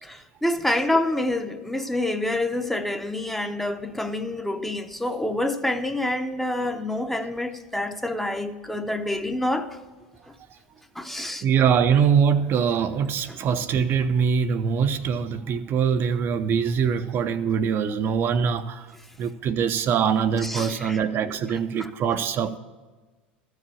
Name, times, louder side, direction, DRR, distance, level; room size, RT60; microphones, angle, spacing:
voice 1, 0.0-9.8 11.0-11.4 13.3-13.4 20.4-21.3 21.8-21.9, left 1 dB, 5° left, 0.7 m, -27 dB
voice 2, 11.4-18.9 19.2-22.6, right 7 dB, 40° right, 0.6 m, -23 dB
13.5 x 4.9 x 8.5 m
hypercardioid pair, 90°, 6 cm